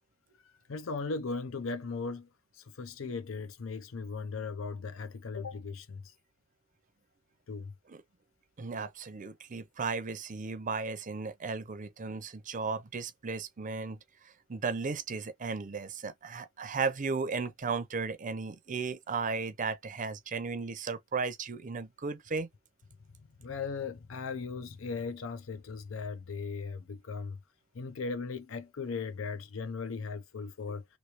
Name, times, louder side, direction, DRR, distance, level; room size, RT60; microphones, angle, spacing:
voice 1, 0.4-2.3 2.5-6.1 7.5-7.7 23.4-27.4 27.7-30.9, left 4 dB, 70° left, 0.6 m, -38 dB
voice 2, 8.6-14.0 14.5-22.5, right 4 dB, 40° right, 0.5 m, -35 dB
3.1 x 2.8 x 2.9 m
head